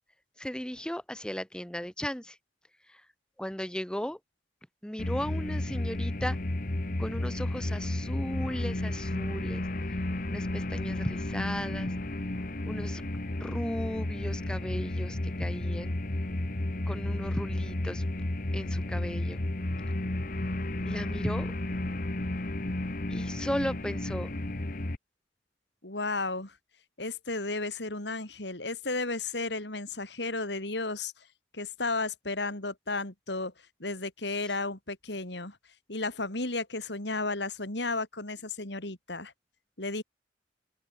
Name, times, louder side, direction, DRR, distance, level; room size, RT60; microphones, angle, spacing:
voice 1, 0.4-2.4 3.4-4.2 4.8-6.4 7.0-9.6 10.3-11.9 12.6-13.0 13.4-15.9 16.9-18.0 18.5-19.4 20.9-21.5 23.1-24.3, equal, 5° left, 1.2 m, -36 dB
sound 1, 5.0-25.0, left 1 dB, 50° left, 1.3 m, -32 dB
voice 2, 25.8-26.6 27.0-31.3 31.5-33.5 33.8-35.6 35.9-39.3 39.8-40.0, left 3 dB, 65° left, 3.8 m, -33 dB
open air
head